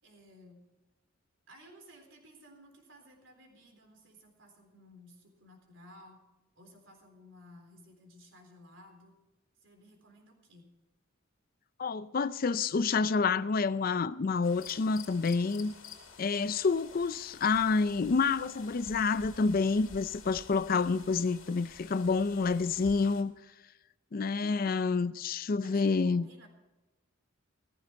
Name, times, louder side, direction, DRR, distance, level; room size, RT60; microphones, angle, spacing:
voice 1, 0.0-0.6 1.5-6.2 6.6-9.2 9.6-10.7 25.6-26.5, equal, 65° right, 3.9 m, -56 dB
voice 2, 11.8-15.7 16.2-23.3 24.1-26.3, left 4 dB, 45° left, 0.4 m, -28 dB
sound 1, 14.4-23.2, left 5 dB, 80° left, 2.6 m, -51 dB
15.0 x 14.5 x 4.5 m
head